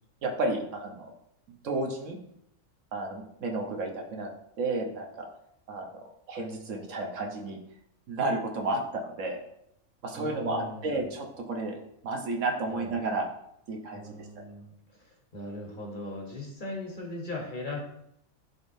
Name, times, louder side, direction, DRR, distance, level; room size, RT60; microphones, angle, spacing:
voice 1, 0.2-1.1 1.6-2.2 2.9-4.3 4.6-5.3 5.7-5.9 6.3-7.6 8.1-9.4 10.0-13.3 13.7-14.4, right 2 dB, 70° right, 1 dB, 1.2 m, -32 dB
voice 2, 10.1-11.0 12.7-13.0 13.9-17.8, left 1 dB, 40° left, -1 dB, 1.3 m, -39 dB
10.5 x 3.5 x 2.6 m, 0.76 s
omnidirectional pair, 1.4 m